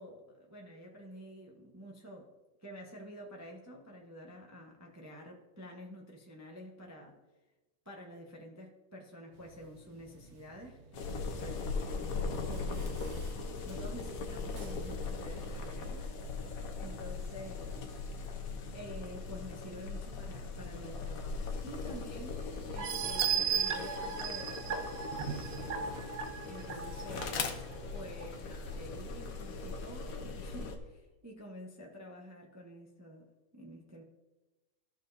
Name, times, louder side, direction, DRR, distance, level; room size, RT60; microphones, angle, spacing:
voice 1, 0.0-2.3 2.6-7.2 7.8-13.2 13.6-16.1 16.7-17.9 18.7-25.1 26.5-34.0, equal, 25° right, -1 dB, 0.3 m, -49 dB
sound 1, 9.3-27.2, right 4 dB, 45° right, 1.0 m, -52 dB
sound 2, 10.9-30.8, left 4 dB, 55° left, 1.0 m, -39 dB
sound 3, 22.8-27.2 27.7-27.8 28.2-28.3, right 8 dB, 70° right, 1.3 m, -35 dB
14.0 x 6.2 x 2.7 m, 1.1 s
omnidirectional pair, 2.3 m